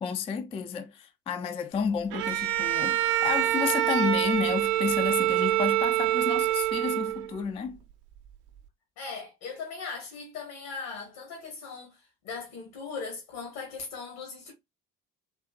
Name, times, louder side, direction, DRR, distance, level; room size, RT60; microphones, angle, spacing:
voice 1, 0.0-7.8, left 6 dB, 15° left, 0.3 m, -31 dB
Bowed string instrument, 2.1-7.4, right 14 dB, 60° right, 0.6 m, -26 dB
voice 2, 9.0-14.5, left 5 dB, 60° left, 1.4 m, -39 dB
3.6 x 2.8 x 2.2 m
figure-of-eight pair, 50°, 45 cm